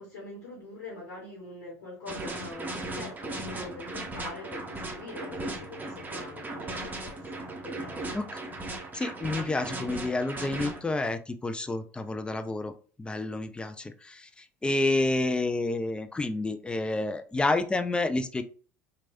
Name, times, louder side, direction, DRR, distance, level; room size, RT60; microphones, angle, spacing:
voice 1, 0.0-8.2, left 3 dB, 80° left, 1.3 m, -44 dB
sound 1, 2.1-10.8, right 2 dB, 20° right, 0.8 m, -37 dB
voice 2, 8.9-12.7 13.0-18.4, left 2 dB, 10° left, 0.4 m, -29 dB
3.0 x 2.6 x 2.6 m
hypercardioid pair, 70°, 9 cm